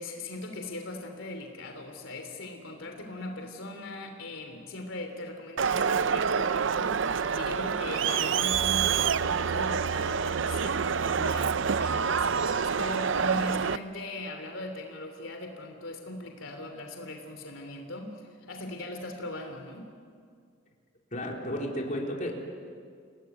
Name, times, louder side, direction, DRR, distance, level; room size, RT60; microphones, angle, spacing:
voice 1, 0.0-19.9, left 2 dB, 85° left, 4 dB, 3.1 m, -39 dB
Crowd, 5.6-13.8, right 6 dB, 70° right, 0.6 m, -27 dB
voice 2, 21.1-22.3, equal, 45° left, -1 dB, 3.9 m, -32 dB
29.0 x 18.5 x 9.6 m, 2.1 s
head